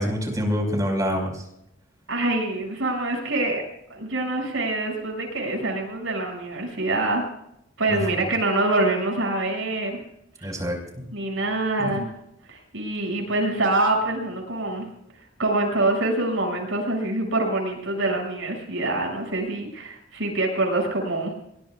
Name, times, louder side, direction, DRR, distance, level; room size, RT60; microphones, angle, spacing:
voice 1, 0.0-1.4 7.9-8.2 10.4-11.0 11.8-12.0, equal, 20° right, 2 dB, 5.4 m, -26 dB
voice 2, 2.1-3.6 3.9-7.2 7.8-10.0 10.4-10.5 11.1-12.1 12.5-14.9 15.4-21.3, right 2 dB, 80° right, 1 dB, 6.9 m, -25 dB
23.5 x 22.0 x 2.5 m, 0.80 s
head